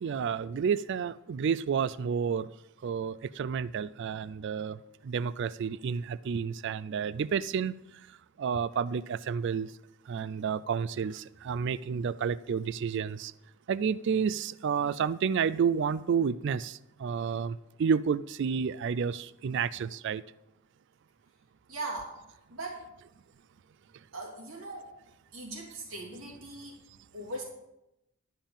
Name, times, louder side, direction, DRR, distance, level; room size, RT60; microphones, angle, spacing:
voice 1, 0.0-2.5 2.8-4.8 5.0-7.7 8.4-9.7 10.1-13.3 13.7-20.2, right 6 dB, 60° right, 18 dB, 0.3 m, -30 dB
voice 2, 21.7-22.9 24.1-24.9 25.3-26.8 27.1-27.4, right 2 dB, 85° right, -1 dB, 3.0 m, -40 dB
11.5 x 5.5 x 7.1 m, 0.88 s
head